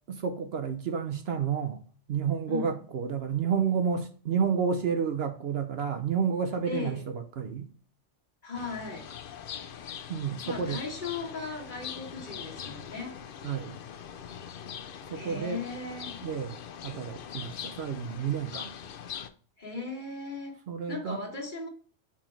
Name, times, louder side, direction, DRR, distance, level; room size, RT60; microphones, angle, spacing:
voice 1, 0.1-1.8 2.1-7.7 10.1-10.8 13.4-13.8 15.1-15.6 16.2-16.6 16.8-18.7 20.7-21.2, right 6 dB, 60° right, 0.8 m, -30 dB
voice 2, 6.7-7.1 8.4-9.1 10.4-13.2 14.9-16.2 19.6-20.6 20.9-21.7, left 3 dB, 40° left, 1.9 m, -37 dB
sound 1, 8.5-19.3, left 8 dB, 55° left, 0.7 m, -42 dB
5.8 x 4.5 x 4.5 m
omnidirectional pair, 1.2 m